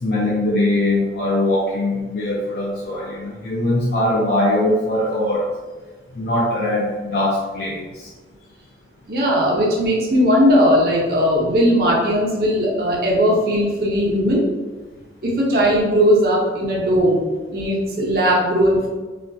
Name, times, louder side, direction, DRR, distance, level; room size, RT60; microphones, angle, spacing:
voice 1, 0.0-5.5 6.1-8.1, left 1 dB, 60° left, -5 dB, 0.6 m, -21 dB
voice 2, 9.1-14.4 15.2-18.9, equal, 55° right, -3 dB, 0.7 m, -18 dB
5.3 x 2.3 x 2.6 m, 1.3 s
head